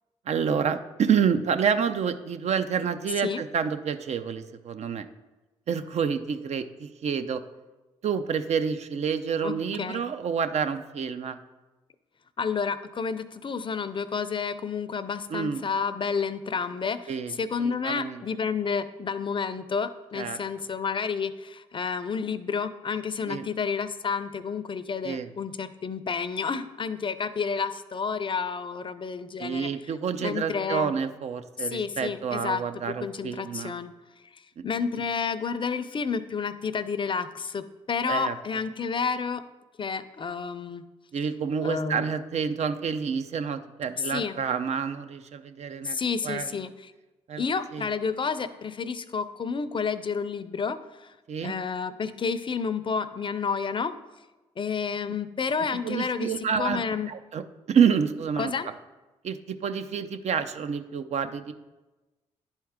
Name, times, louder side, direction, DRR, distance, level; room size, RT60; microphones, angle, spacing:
voice 1, 0.3-5.1 5.7-7.4 8.0-11.4 15.3-15.6 17.1-18.2 20.1-20.4 23.3-23.5 25.0-25.3 29.4-33.8 34.6-34.7 38.1-38.4 41.1-46.5 47.3-47.9 51.3-51.6 55.8-56.8 57.1-57.4 57.7-58.5 59.2-61.5, right 7 dB, 60° right, 9 dB, 0.6 m, -28 dB
voice 2, 9.4-10.0 12.4-29.7 30.2-30.9 31.6-32.6 33.0-33.9 34.6-39.4 39.8-40.8 41.6-42.1 44.0-44.4 45.8-46.9 47.4-51.1 51.4-53.9 54.6-56.3 56.6-57.1 58.4-58.7, left 5 dB, 40° left, 12 dB, 0.6 m, -30 dB
10.5 x 4.5 x 3.6 m, 1.1 s
supercardioid pair, 50°, 13 cm